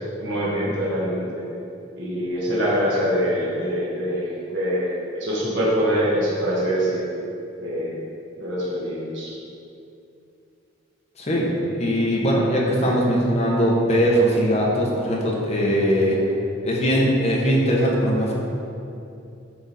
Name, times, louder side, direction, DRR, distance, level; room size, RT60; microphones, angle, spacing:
voice 1, 0.2-1.4 2.0-4.9 5.1-7.0 7.6-7.9 8.4-9.3, equal, 70° right, -7 dB, 1.4 m, -24 dB
voice 2, 11.2-11.5 11.8-16.2 16.6-18.3, equal, 35° left, -3 dB, 1.0 m, -20 dB
7.7 x 3.6 x 4.2 m, 2.7 s
head